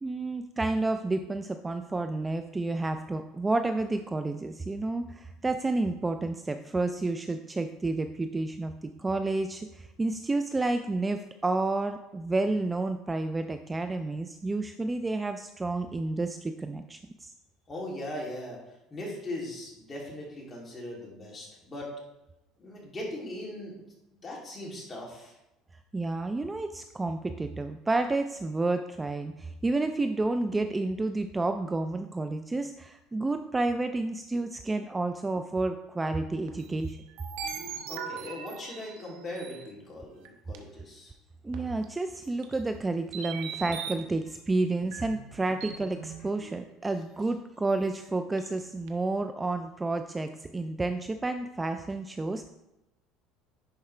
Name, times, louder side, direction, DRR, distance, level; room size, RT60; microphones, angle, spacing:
voice 1, 0.0-17.3 25.9-37.0 41.4-52.5, right 2 dB, 15° right, 8 dB, 0.3 m, -30 dB
voice 2, 17.7-18.6 18.9-21.9 22.6-23.8 24.2-25.3 37.9-41.1 43.3-43.4, left 1 dB, 25° left, -4 dB, 2.8 m, -39 dB
sound 1, 36.5-39.7 40.2-40.3 40.5-40.6 41.5-41.9 42.4-42.5 43.1-44.0 44.9-46.9 47.2-47.3 47.9-48.0 48.4-48.6 48.9-49.0, right 7 dB, 80° right, 1.0 m, -40 dB
10.5 x 4.7 x 3.3 m, 0.94 s
cardioid pair, 120°, 0 cm